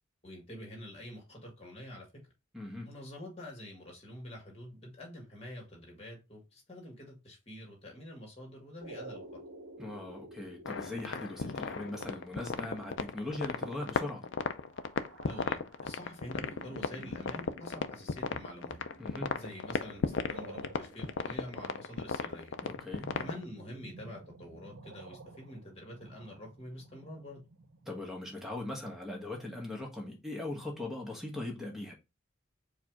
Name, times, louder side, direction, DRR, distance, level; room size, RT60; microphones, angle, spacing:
voice 1, 0.2-2.1 2.8-9.2 15.3-18.8 19.3-22.5 23.2-27.4, left 1 dB, 30° left, 1.7 m, -47 dB
voice 2, 2.5-2.9 9.8-14.2 19.0-19.3 22.6-23.1 27.9-31.9, left 2 dB, ahead, 1.1 m, -40 dB
sound 1, 8.8-28.0, right 2 dB, 90° right, 1.0 m, -52 dB
sound 2, 10.7-23.4, left 5 dB, 65° left, 0.4 m, -35 dB
sound 3, 16.5-23.1, right 2 dB, 40° right, 1.0 m, -60 dB
4.7 x 2.4 x 4.6 m
head